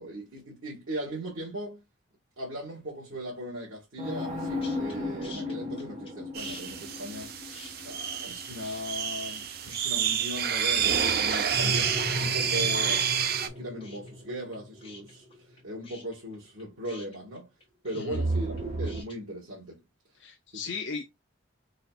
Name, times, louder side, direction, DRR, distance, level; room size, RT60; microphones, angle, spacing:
voice 1, 0.0-1.8 2.4-17.5 17.8-19.8 20.5-20.6, equal, 85° right, 1.6 m, -39 dB
sound 1, 4.0-9.1 11.5-15.5 18.1-19.0, equal, 35° right, 1.3 m, -35 dB
sound 2, 4.6-4.9 5.2-6.1 6.4-8.3 8.6-9.4 9.7-10.5 10.7-19.2, left 3 dB, 25° left, 1.4 m, -49 dB
sound 3, 6.4-13.5, right 8 dB, 50° right, 0.6 m, -29 dB
voice 2, 17.9-18.2 20.2-21.1, left 5 dB, 60° left, 0.5 m, -36 dB
4.0 x 3.9 x 2.3 m
head